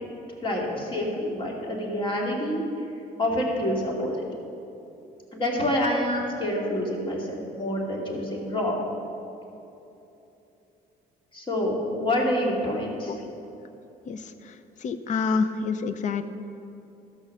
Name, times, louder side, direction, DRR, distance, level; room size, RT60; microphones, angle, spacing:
voice 1, 0.4-2.6 3.2-4.3 5.3-8.8 11.3-13.2 15.1-15.2, left 1 dB, 30° left, -1 dB, 2.5 m, -27 dB
voice 2, 14.8-16.2, left 5 dB, 45° left, 11 dB, 0.6 m, -27 dB
13.5 x 6.3 x 6.5 m, 2.8 s
cardioid pair, 110°, 17 cm